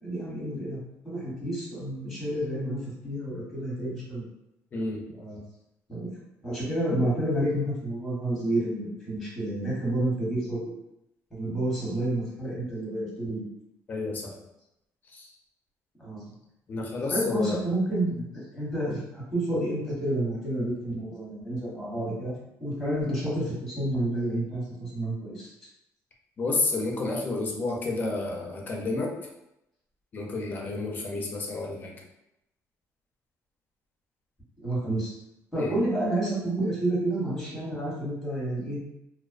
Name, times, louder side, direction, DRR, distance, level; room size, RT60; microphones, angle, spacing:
voice 1, 0.0-4.3 5.1-5.4 5.9-6.1 6.4-10.7 11.3-13.4 16.0-16.2 17.1-22.3 22.6-25.5 34.6-35.2 35.5-38.8, right 1 dB, ahead, -7 dB, 0.9 m, -30 dB
voice 2, 4.7-5.0 13.9-14.3 15.1-15.3 16.7-17.6 26.4-29.1 30.1-31.9 35.6-35.7, left 3 dB, 30° left, -1 dB, 0.4 m, -30 dB
2.5 x 2.1 x 2.4 m, 0.87 s
cardioid pair, 155°, 6 cm